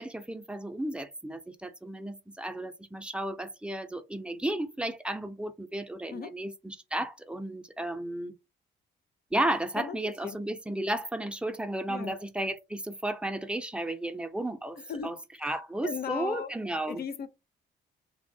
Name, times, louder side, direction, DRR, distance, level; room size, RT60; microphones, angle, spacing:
voice 1, 0.0-8.3 9.3-15.2 15.4-17.0, right 1 dB, 5° right, 0.4 m, -33 dB
voice 2, 9.8-10.4 11.9-12.2 14.8-15.2 15.5-16.5 16.9-17.3, left 6 dB, 50° left, 0.5 m, -37 dB
3.0 x 2.0 x 2.6 m
cardioid pair, 90°, 20 cm